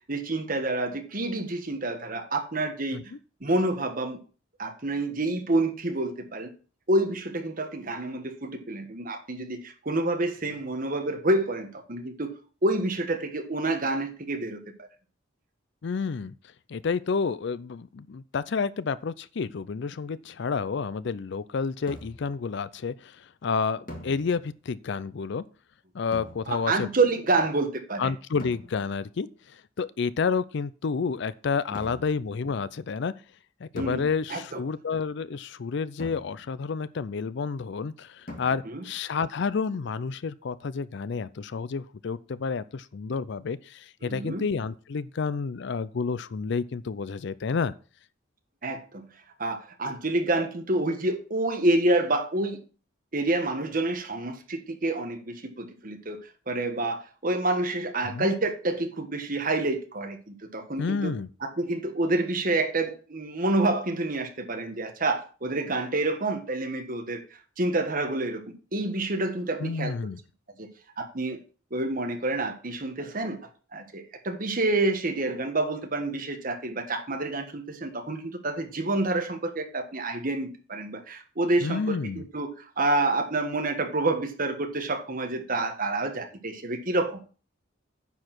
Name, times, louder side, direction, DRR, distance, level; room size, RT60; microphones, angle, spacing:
voice 1, 0.1-3.0 3.4-4.2 4.6-6.5 6.9-12.3 12.6-14.9 26.5-28.1 33.8-34.0 34.3-34.4 38.6-38.8 44.0-44.4 48.6-49.0 49.4-52.6 53.1-56.2 56.5-61.1 61.4-67.2 67.6-68.4 68.7-69.9 70.6-70.7 71.0-71.4 71.7-73.4 73.7-87.2, right 2 dB, 45° right, 1.4 m, -28 dB
voice 2, 15.8-16.3 16.7-25.4 25.9-26.9 28.0-33.1 33.6-47.7 58.1-58.3 60.8-61.3 69.6-70.2 81.6-82.2, left 5 dB, 60° left, 0.4 m, -30 dB
sound 1, 21.9-22.4 23.9-24.7 26.1-26.9 28.4-29.1 31.7-32.3 33.8-34.6 36.0-36.8 38.3-39.0, left 1 dB, 45° left, 1.9 m, -44 dB
9.7 x 4.7 x 6.0 m
head